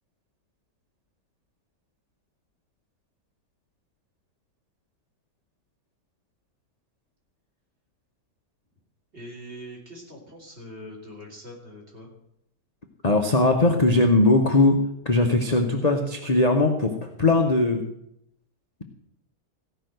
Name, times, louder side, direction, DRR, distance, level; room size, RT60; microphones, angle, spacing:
voice 1, 9.1-12.1, equal, 35° right, -1 dB, 3.3 m, -42 dB
voice 2, 13.0-17.9, left 2 dB, 30° left, 3 dB, 0.8 m, -20 dB
15.5 x 5.6 x 7.8 m, 0.77 s
omnidirectional pair, 1.8 m